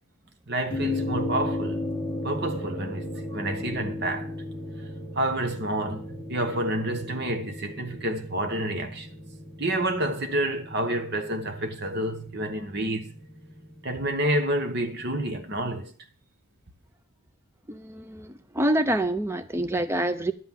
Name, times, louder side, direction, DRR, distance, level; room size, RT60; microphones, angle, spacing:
voice 1, 0.5-1.9 2.2-4.3 4.8-4.9 5.1-9.1 9.6-13.2 13.8-15.9, right 1 dB, 50° right, 1.2 m, -29 dB
sound 1, 0.7-15.2, left 1 dB, 5° left, 1.2 m, -36 dB
voice 2, 17.7-20.3, right 1 dB, 10° right, 0.6 m, -26 dB
11.5 x 5.9 x 7.4 m
head